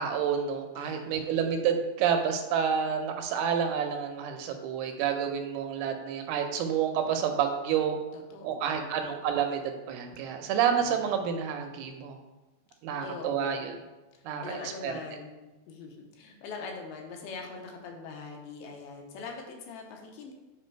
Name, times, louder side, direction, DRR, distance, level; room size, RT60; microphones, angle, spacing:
voice 1, 0.0-8.0 8.4-9.6 9.9-12.2 12.8-13.7 14.2-14.9, right 8 dB, 85° right, 5 dB, 2.7 m, -29 dB
voice 2, 0.8-1.3 8.1-9.0 10.8-11.1 13.0-13.7 14.4-20.3, left 4 dB, 80° left, 2 dB, 2.6 m, -43 dB
7.5 x 3.4 x 4.5 m, 1.1 s
omnidirectional pair, 4.5 m